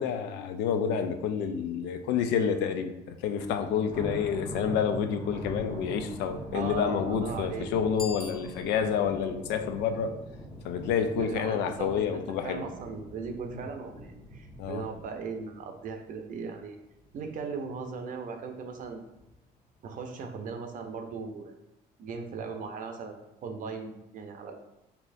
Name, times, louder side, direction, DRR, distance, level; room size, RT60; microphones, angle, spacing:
voice 1, 0.0-10.1 10.6-12.6 14.6-14.8, left 7 dB, 85° left, 8 dB, 0.4 m, -29 dB
Thunder, 3.3-16.6 17.0-17.3 17.7-17.8 18.6-19.2, equal, 70° left, 1.3 m, -43 dB
voice 2, 6.5-7.7 11.1-16.8 17.1-19.1 19.8-21.5 22.0-24.6, right 5 dB, 50° right, 5 dB, 0.5 m, -38 dB
Bicycle bell, 7.9-9.1, left 1 dB, ahead, 0.7 m, -43 dB
4.1 x 2.7 x 2.6 m, 0.88 s
cardioid pair, 110°, 17 cm